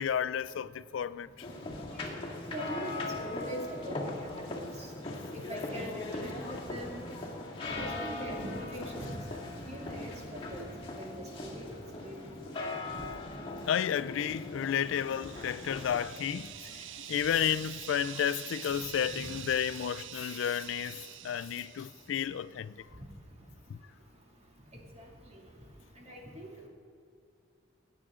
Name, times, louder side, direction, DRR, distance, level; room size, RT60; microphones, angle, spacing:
voice 1, 0.0-1.5 5.1-5.2 13.7-22.9 23.7-23.8, left 9 dB, 80° left, 0.3 m, -32 dB
sound 1, 1.4-16.0, left 2 dB, 30° left, 2.1 m, -40 dB
voice 2, 2.5-4.3 4.6-4.7 5.5-7.0 7.6-10.7 11.0-12.3 12.9-13.0 19.2-19.3 24.9-25.0 25.3-25.4 26.0-26.5, right 1 dB, 35° right, 2.4 m, -42 dB
Hissing Snakes, 14.5-22.3, right 11 dB, 75° right, 0.5 m, -46 dB
20.0 x 9.2 x 3.7 m
head